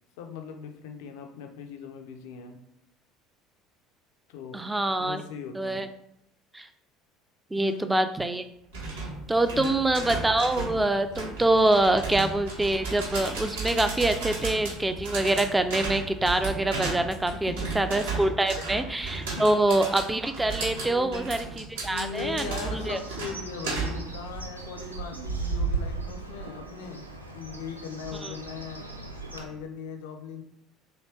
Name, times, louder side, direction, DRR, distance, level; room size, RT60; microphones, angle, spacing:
voice 1, 0.2-2.6 4.3-4.6 5.0-5.9 7.6-7.9 9.6-9.7 17.3-17.9 18.6-18.9 19.3-19.5 20.8-21.5 21.9-27.0 27.3-28.9 29.3-30.4, left 6 dB, 65° left, 5 dB, 0.4 m, -39 dB
voice 2, 4.5-5.2 5.5-5.9 6.5-6.7 7.5-8.4 9.3-23.0 28.2-28.3, right 2 dB, 10° right, 9 dB, 0.3 m, -25 dB
sound 1, 8.7-18.3, left 2 dB, 80° left, 0.8 m, -48 dB
sound 2, 8.7-24.2, right 4 dB, 70° right, 0.8 m, -35 dB
Bird, 22.8-29.4, right 4 dB, 90° right, 0.3 m, -36 dB
2.9 x 2.8 x 3.1 m, 0.79 s
figure-of-eight pair, 60°, 0 cm